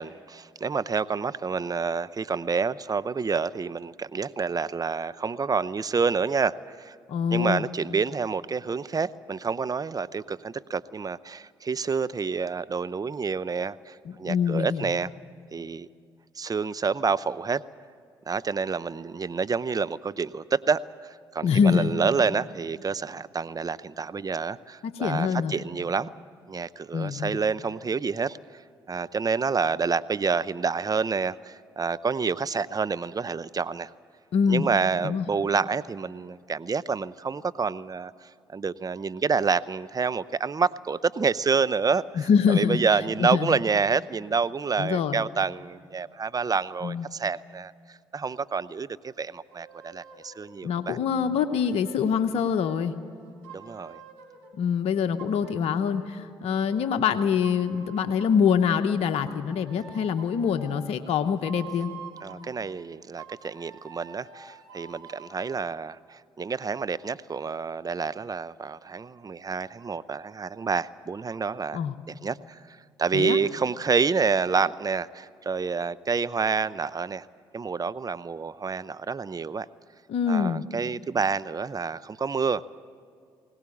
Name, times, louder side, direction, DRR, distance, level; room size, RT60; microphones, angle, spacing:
voice 1, 0.0-6.9 7.3-15.1 15.5-15.9 16.4-17.6 18.3-26.1 26.5-28.4 28.9-33.9 34.5-38.1 38.5-47.7 48.1-51.0 53.5-54.0 62.2-71.8 72.1-72.6 73.0-77.3 77.5-79.7 80.3-82.6, right 5 dB, 35° right, 16 dB, 0.7 m, -28 dB
voice 2, 7.1-7.7 14.1-14.9 21.4-21.9 24.8-25.6 26.9-27.4 34.3-34.7 35.0-35.3 42.2-42.8 43.2-43.5 44.8-45.2 46.8-47.1 50.6-52.9 54.5-61.9 71.7-71.9 73.1-73.4 80.1-80.6, left 7 dB, 65° left, 7 dB, 0.9 m, -25 dB
sound 1, 49.5-50.5 51.1-54.5 55.2-57.1 57.4-58.5 59.2-62.5 63.2-65.4, right 6 dB, 90° right, 3.3 m, -47 dB
21.5 x 18.0 x 8.6 m, 2.2 s
hypercardioid pair, 50°, 11 cm